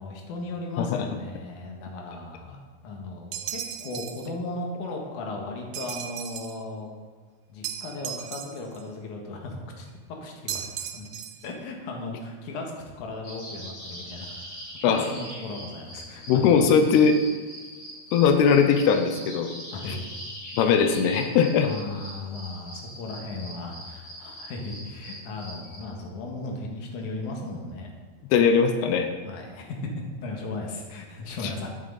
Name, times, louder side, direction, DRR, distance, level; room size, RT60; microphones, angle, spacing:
voice 1, 0.0-6.9 7.5-10.7 10.9-11.0 11.4-16.7 19.7-20.1 21.6-27.9 29.3-29.8 30.2-31.7, left 2 dB, 55° left, 0 dB, 2.9 m, -36 dB
sound 1, 3.3-4.3 5.7-6.6 7.6-8.8 10.5-11.5, right 10 dB, 80° right, 2.0 m, -36 dB
sound 2, 13.2-25.8, equal, 40° left, 4.4 m, -42 dB
voice 2, 16.3-17.2 18.1-19.5 20.6-21.7 28.3-29.1, left 6 dB, 85° left, 6 dB, 2.9 m, -20 dB
13.0 x 10.5 x 4.0 m, 1.5 s
omnidirectional pair, 4.5 m